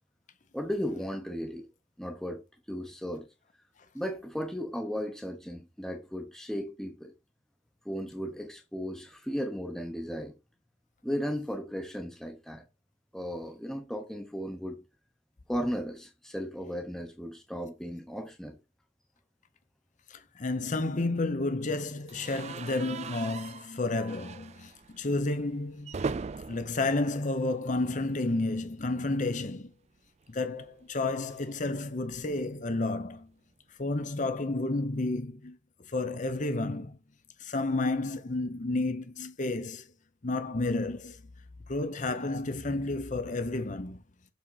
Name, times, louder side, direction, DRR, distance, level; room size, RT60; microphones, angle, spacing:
voice 1, 0.5-1.7 2.0-2.4 2.7-3.3 3.9-7.1 7.8-10.3 11.0-12.6 13.1-14.8 15.5-18.6, equal, ahead, 0.8 m, -35 dB
voice 2, 20.1-26.0 26.5-29.7 30.3-33.3 33.8-35.6 35.9-37.0 37.4-39.9 40.2-41.2 41.7-44.0, left 2 dB, 40° left, 0.7 m, -31 dB
sound 1, 22.1-28.1 28.4-28.6 28.9-29.0 30.2-32.6, right 4 dB, 35° right, 0.3 m, -41 dB
7.2 x 3.7 x 5.6 m
head